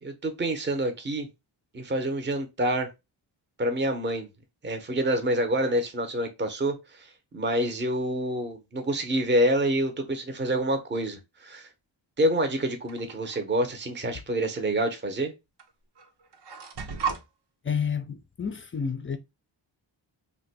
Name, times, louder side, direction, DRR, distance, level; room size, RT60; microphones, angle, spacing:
voice 1, 0.0-1.3 1.7-2.9 3.6-4.3 4.6-11.7 12.2-15.3, right 1 dB, 25° right, 0.7 m, -27 dB
sound 1, 12.9-13.4 14.6-14.7 15.6-15.7 16.0-17.2, right 6 dB, 60° right, 0.7 m, -34 dB
voice 2, 17.6-19.2, left 6 dB, 30° left, 0.3 m, -30 dB
2.5 x 2.2 x 4.0 m
wide cardioid pair, 70°, 47 cm